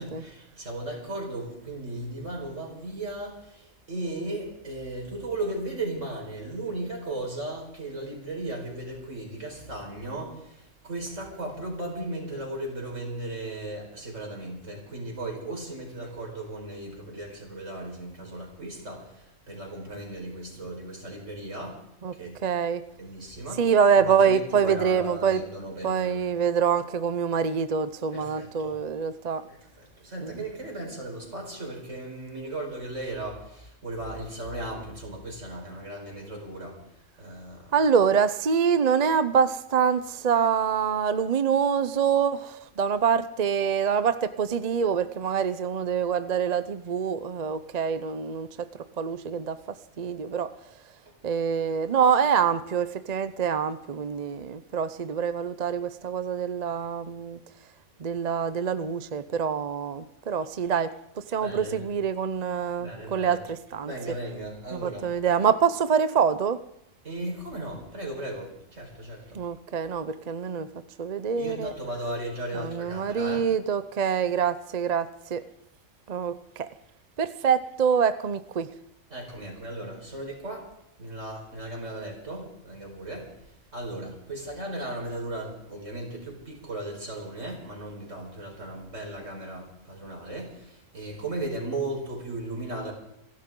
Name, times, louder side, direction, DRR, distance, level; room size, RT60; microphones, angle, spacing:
voice 1, 0.0-21.8 22.1-22.4 23.0-23.6 23.9-26.3 28.1-28.8 29.5-36.8 37.2-37.7 51.1-51.2 61.4-61.8 62.8-63.4 63.8-65.1 67.0-69.4 71.4-73.4 79.1-80.7 81.0-92.9, right 1 dB, 70° right, 0 dB, 5.2 m, -36 dB
voice 2, 22.4-22.8 23.6-25.4 25.8-29.5 30.2-30.3 37.7-48.7 49.0-49.6 50.0-50.5 51.2-57.4 58.0-63.9 64.7-66.6 69.3-70.7 71.0-71.7 72.5-75.4 76.1-76.7 77.2-78.7, right 7 dB, 45° right, 12 dB, 0.6 m, -25 dB
28.0 x 12.0 x 3.8 m, 0.79 s
omnidirectional pair, 1.4 m